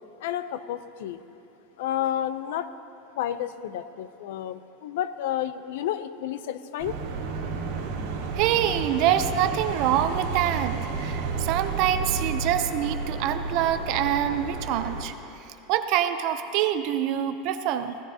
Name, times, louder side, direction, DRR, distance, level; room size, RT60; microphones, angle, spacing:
voice 1, 0.2-1.2 1.8-2.7 3.2-7.0, left 11 dB, 70° left, 13 dB, 0.5 m, -31 dB
sound 1, 6.8-15.0, right 4 dB, 90° right, 1.6 m, -31 dB
voice 2, 8.4-15.1 15.7-18.0, right 11 dB, 45° right, 10 dB, 0.5 m, -25 dB
16.5 x 13.5 x 2.8 m, 3.0 s
supercardioid pair, 165°, 0 cm